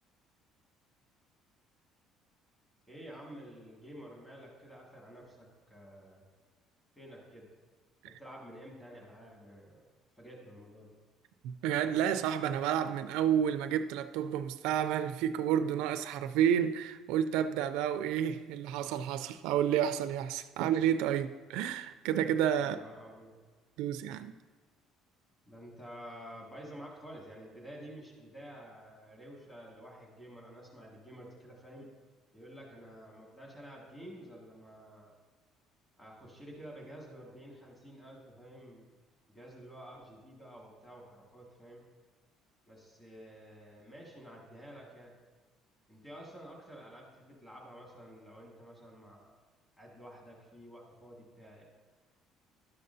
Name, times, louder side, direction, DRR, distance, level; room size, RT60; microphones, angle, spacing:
voice 1, 2.9-6.2 6.9-7.5 8.1-9.8 10.2-10.9 22.6-23.4 25.5-31.9 32.3-35.1 36.0-38.9 39.3-41.8 42.7-45.1 45.9-49.4 49.8-51.6, equal, 15° left, 1.9 m, -50 dB
voice 2, 11.4-22.8 23.8-24.3, right 9 dB, 85° right, 0.4 m, -30 dB
11.5 x 6.6 x 2.7 m
cardioid pair, 165°, 0 cm